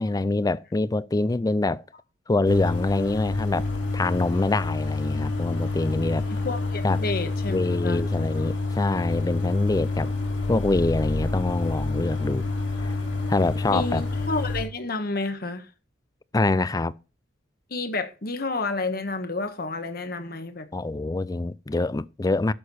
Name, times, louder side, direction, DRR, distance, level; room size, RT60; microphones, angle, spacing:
voice 1, 0.0-1.8 2.3-3.7 3.9-6.2 6.8-7.0 7.5-10.1 10.5-12.5 13.3-14.0 16.3-16.9 20.7-22.5, left 2 dB, 20° left, 0.4 m, -25 dB
sound 1, 2.5-14.6, left 3 dB, 70° left, 2.9 m, -28 dB
voice 2, 6.3-8.0 13.7-15.7 17.7-20.7, left 3 dB, 55° left, 1.3 m, -30 dB
11.5 x 6.6 x 4.2 m
head